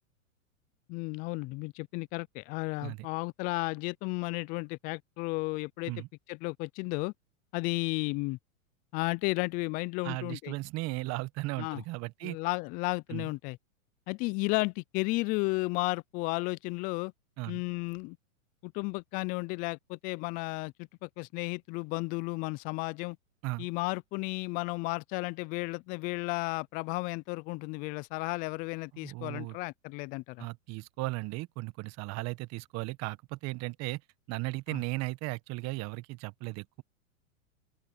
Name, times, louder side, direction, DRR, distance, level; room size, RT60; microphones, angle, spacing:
voice 1, 0.9-5.9 6.3-7.1 7.5-8.4 8.9-10.5 11.6-11.8 12.2-13.6 14.1-17.1 17.5-18.2 18.6-23.2 23.6-30.5 34.7-34.8, left 26 dB, 25° left, 0.3 m, -33 dB
voice 2, 10.0-12.4 13.1-13.3 17.4-17.6 23.4-23.7 28.9-29.6 30.4-34.0 34.3-36.8, right 22 dB, 40° right, 1.4 m, -36 dB
hypercardioid pair, 115°, 41 cm